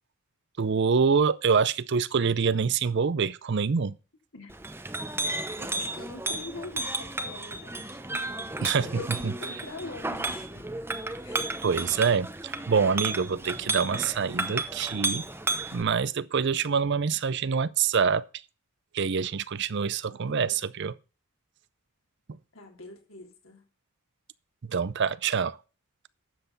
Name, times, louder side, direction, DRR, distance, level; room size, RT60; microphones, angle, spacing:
voice 1, 0.6-3.9 8.6-8.9 11.6-15.2 15.7-18.2 18.9-20.9 22.3-22.4 24.6-25.6, right 6 dB, 55° right, 0.5 m, -26 dB
Chink clink, 4.5-15.8, right 2 dB, 10° right, 0.8 m, -33 dB
voice 2, 5.6-8.0 8.6-10.6 11.2-11.7 20.3-20.6 22.5-23.7, left 3 dB, 70° left, 3.5 m, -43 dB
12.5 x 8.0 x 4.1 m
head